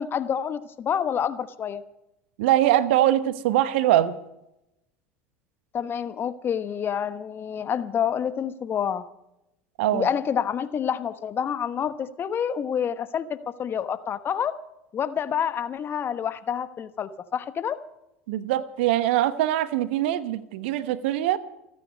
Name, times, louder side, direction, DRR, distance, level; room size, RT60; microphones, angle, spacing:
voice 1, 0.0-1.8 5.7-9.0 9.9-14.5 14.9-17.8, left 8 dB, 35° left, 12 dB, 1.2 m, -28 dB
voice 2, 2.4-4.2 9.8-10.1 18.3-21.4, right 13 dB, 65° right, 14 dB, 1.1 m, -22 dB
28.0 x 9.8 x 5.3 m, 0.87 s
figure-of-eight pair, 75°, 7 cm